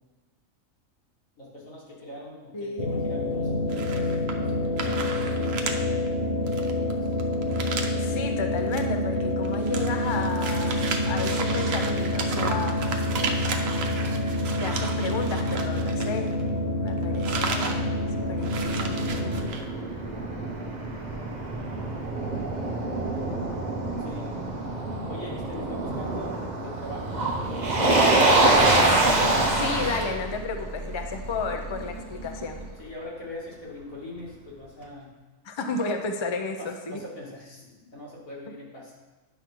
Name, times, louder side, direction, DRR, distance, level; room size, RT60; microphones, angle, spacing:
voice 1, 1.4-5.4 6.7-7.2 24.0-24.4 25.1-28.8 32.8-35.1 36.6-38.9, left 1 dB, 85° left, -6 dB, 2.6 m, -42 dB
voice 2, 2.5-3.0 8.0-10.8 11.1-12.8 14.6-16.4 16.8-19.1 29.5-32.6 35.4-37.0, left 4 dB, 35° left, 5 dB, 0.4 m, -32 dB
sound 1, 2.8-19.5, left 1 dB, 55° left, 1.2 m, -27 dB
sound 2, 3.7-4.5 4.8-5.8 6.1-6.2 6.5-8.0 8.6-8.8 9.2-16.6 16.9-17.8 18.1-18.2 18.4-19.6, right 4 dB, 75° right, 1.1 m, -34 dB
Motor vehicle (road), 17.6-32.7, right 2 dB, 35° right, 1.0 m, -26 dB
9.9 x 3.5 x 6.0 m, 1.2 s
omnidirectional pair, 1.4 m